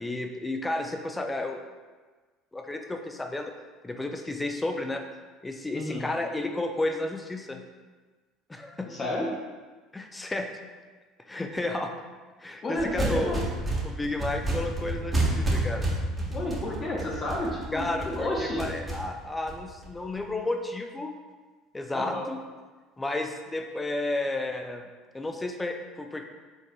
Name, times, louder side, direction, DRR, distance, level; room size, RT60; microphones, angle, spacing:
voice 1, 0.0-1.6 2.5-3.5 3.8-5.0 5.4-7.6 8.5-8.9 9.9-10.5 11.3-11.9 12.4-13.4 13.8-15.8 17.7-21.1 21.7-22.4 23.0-24.9 25.1-26.2, left 2 dB, 15° left, 4 dB, 0.4 m, -32 dB
voice 2, 5.7-6.1 8.9-9.3 12.6-13.4 16.3-18.7 21.9-22.3, left 1 dB, 35° left, -3 dB, 0.8 m, -31 dB
sound 1, 12.8-20.2, right 1 dB, 20° right, 1.2 m, -30 dB
5.1 x 3.7 x 2.2 m, 1.3 s
hypercardioid pair, 70°, 0 cm